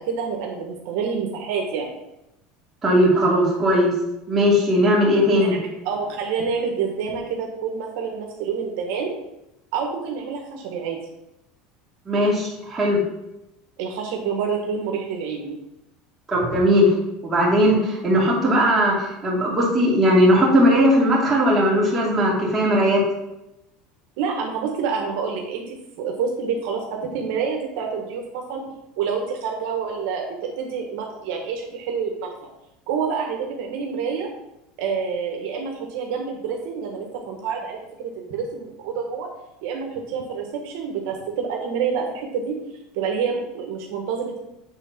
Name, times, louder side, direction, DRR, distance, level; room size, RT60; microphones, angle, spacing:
voice 1, 0.0-1.9 5.3-5.5 5.8-9.1 9.7-11.0 13.8-15.6 24.2-28.6 29.0-32.5 32.9-34.3 34.8-39.3 39.6-42.5 42.9-44.4, right 6 dB, 65° right, 1 dB, 1.4 m, -27 dB
voice 2, 2.8-3.9 4.3-5.5 12.1-13.0 16.3-16.9 17.2-23.0, equal, 15° right, -5 dB, 2.5 m, -18 dB
8.2 x 3.8 x 5.8 m, 0.90 s
supercardioid pair, 155°, 0 cm